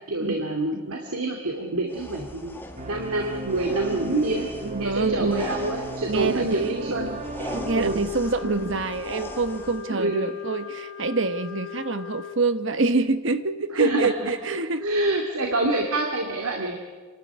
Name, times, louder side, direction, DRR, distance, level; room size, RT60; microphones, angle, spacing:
voice 1, 0.1-4.5 4.8-7.2 7.7-8.1 8.4-8.8 9.9-10.3 13.7-14.3 14.8-16.7, right 2 dB, 85° right, 1 dB, 2.5 m, -27 dB
sound 1, 1.9-9.8, left 1 dB, 10° left, 1.6 m, -39 dB
sound 2, 2.8-7.9, right 1 dB, 35° right, 1.6 m, -36 dB
voice 2, 4.3-5.5 6.1-7.0 7.4-14.8, right 3 dB, 60° right, 11 dB, 1.1 m, -26 dB
Wind instrument woodwind instrument, 7.6-12.4, left 9 dB, 70° left, 1.0 m, -39 dB
27.0 x 12.5 x 9.7 m, 1.4 s
head